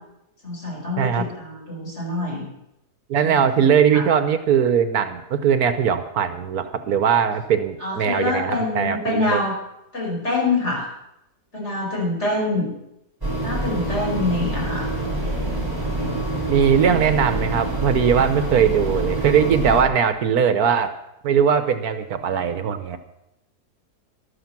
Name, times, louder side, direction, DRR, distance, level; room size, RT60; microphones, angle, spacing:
voice 1, 0.4-2.5 3.2-4.0 7.8-9.6 9.9-10.9 11.5-12.7 13.4-14.9, left 2 dB, 45° left, -3 dB, 5.8 m, -25 dB
voice 2, 1.0-1.3 3.1-9.4 16.5-20.9 21.2-23.0, right 7 dB, 70° right, 10 dB, 1.3 m, -20 dB
sound 1, 13.2-19.8, right 1 dB, 15° right, 2.7 m, -26 dB
13.5 x 12.0 x 5.9 m, 0.86 s
omnidirectional pair, 1.7 m